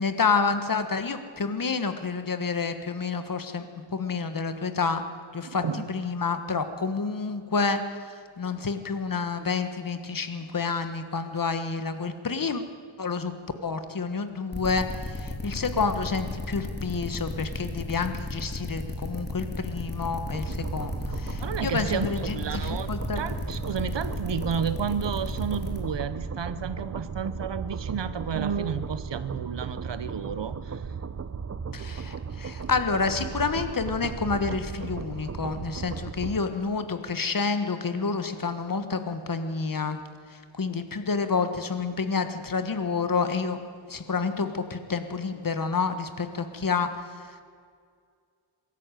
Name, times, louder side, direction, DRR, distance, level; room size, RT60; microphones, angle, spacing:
voice 1, 0.0-3.7 3.9-5.0 5.3-12.6 13.0-13.3 13.6-23.2 31.7-40.0 40.3-43.6 43.9-47.4, left 4 dB, 40° left, 9 dB, 1.5 m, -29 dB
voice 2, 5.4-5.9 21.4-30.8, right 7 dB, 60° right, 14 dB, 1.0 m, -31 dB
sound 1, 14.5-25.8, left 2 dB, 20° left, 3.5 m, -35 dB
sound 2, 20.2-36.4, right 5 dB, 30° right, 0.8 m, -36 dB
sound 3, 20.6-25.8, left 4 dB, 60° left, 1.7 m, -46 dB
22.0 x 13.5 x 9.1 m, 2.2 s
wide cardioid pair, 100°, 49 cm